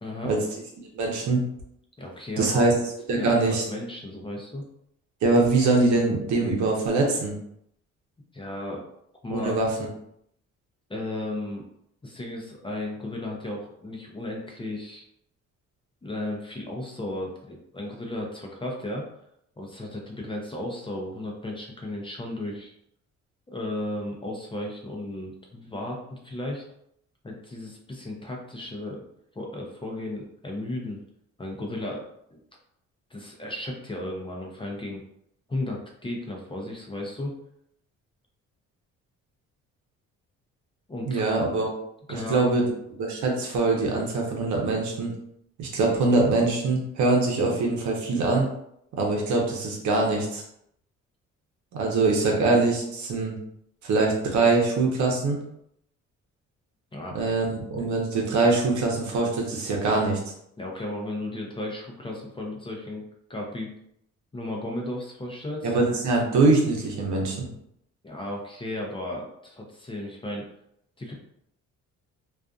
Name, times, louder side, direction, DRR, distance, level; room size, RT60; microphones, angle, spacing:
voice 1, 0.0-0.3 2.0-2.7 3.2-4.7 8.3-8.9 9.2-9.6 10.9-11.6 12.0-15.0 16.0-19.1 19.6-22.7 23.5-26.6 27.2-29.0 29.3-31.0 31.4-32.4 33.1-35.0 35.5-37.3 40.9-41.3 42.1-42.7 56.9-57.3 57.8-57.9 60.6-63.0 63.3-63.7 64.3-65.7 68.0-70.5 71.0-71.1, left 1 dB, 15° left, -1 dB, 0.6 m, -34 dB
voice 2, 0.9-1.4 2.4-2.7 3.1-3.6 5.2-7.3 9.3-9.9 41.1-41.7 42.1-42.6 43.0-45.1 45.6-48.5 49.0-50.4 51.7-53.4 53.8-55.4 57.1-60.2 65.6-67.5, right 3 dB, 70° right, -1 dB, 0.8 m, -23 dB
2.5 x 2.4 x 2.3 m, 0.74 s
cardioid pair, 90°, 30 cm